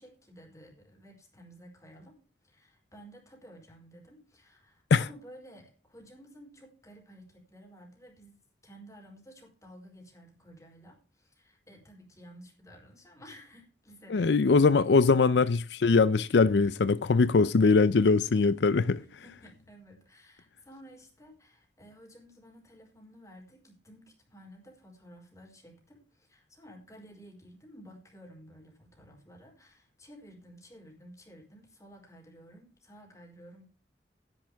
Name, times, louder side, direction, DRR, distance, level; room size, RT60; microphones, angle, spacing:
voice 1, 0.0-8.4 8.6-14.4 18.9-33.7, equal, 20° left, 4.6 m, -53 dB
voice 2, 14.1-19.0, left 4 dB, 75° left, 0.5 m, -22 dB
12.0 x 11.0 x 3.5 m
head